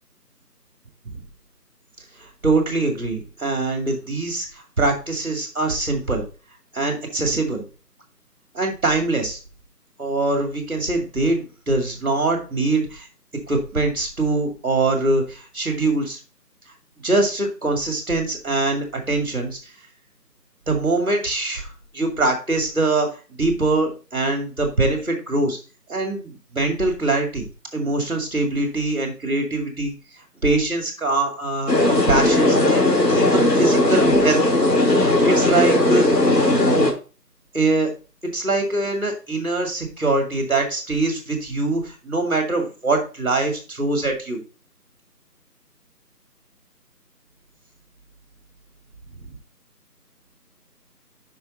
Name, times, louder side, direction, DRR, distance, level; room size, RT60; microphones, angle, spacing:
voice 1, 2.2-6.3 6.7-7.6 8.5-9.4 10.0-13.1 13.5-16.2 17.0-19.7 20.7-21.7 21.9-25.6 25.9-29.9 30.4-34.4 35.1-36.1 37.5-37.9 38.3-44.4, right 2 dB, 15° right, 2 dB, 1.9 m, -23 dB
sound 1, 31.7-36.9, left 1 dB, 85° left, 2.7 m, -17 dB
10.0 x 5.3 x 2.6 m, 0.33 s
figure-of-eight pair, 170°, 48 cm